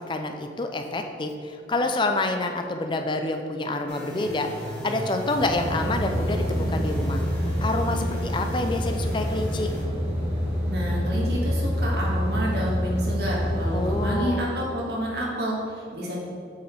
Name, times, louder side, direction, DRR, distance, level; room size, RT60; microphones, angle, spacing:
voice 1, 0.0-7.2 7.6-9.7 13.7-14.5, left 2 dB, 25° left, 5 dB, 0.4 m, -28 dB
sound 1, 3.9-9.8, equal, 5° left, 1.4 m, -35 dB
sound 2, 5.4-14.1, equal, 15° right, 1.4 m, -27 dB
voice 2, 10.7-16.2, equal, 60° right, -4 dB, 1.5 m, -29 dB
7.6 x 4.8 x 3.4 m, 2.3 s
head